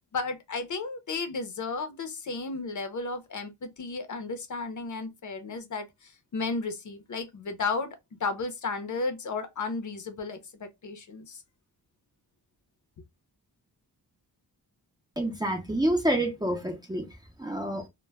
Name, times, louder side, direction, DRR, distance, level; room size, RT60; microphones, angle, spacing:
voice 1, 0.1-11.4, left 4 dB, 50° left, 0.6 m, -34 dB
voice 2, 15.2-17.9, right 1 dB, 10° right, 0.5 m, -28 dB
2.2 x 2.2 x 3.2 m
wide cardioid pair, 100°, 39 cm